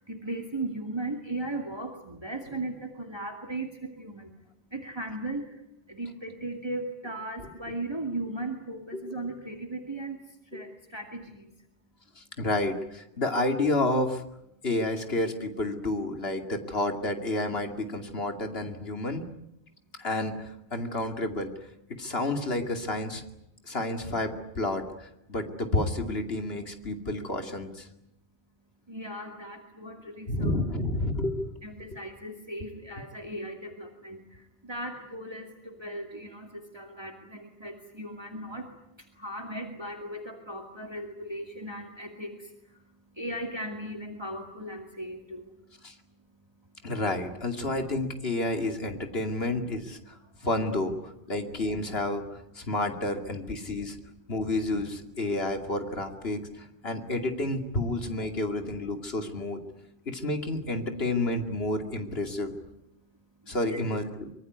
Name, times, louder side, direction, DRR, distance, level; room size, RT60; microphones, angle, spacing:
voice 1, 0.1-3.7 4.0-4.3 4.7-5.4 5.9-10.2 10.5-11.4 28.9-30.6 31.6-34.2 34.7-36.5 36.7-38.6 39.2-42.4 43.2-45.4 63.7-63.8, right 1 dB, 25° right, 3 dB, 2.5 m, -37 dB
voice 2, 12.2-14.2 14.6-19.2 20.0-21.5 22.0-23.2 23.7-27.9 30.3-31.5 45.8-45.9 46.8-50.2 50.4-52.2 52.6-54.0 54.3-59.6 60.1-62.5 63.5-64.3, left 2 dB, 75° left, 6 dB, 2.8 m, -30 dB
25.0 x 22.5 x 9.5 m, 0.82 s
omnidirectional pair, 1.0 m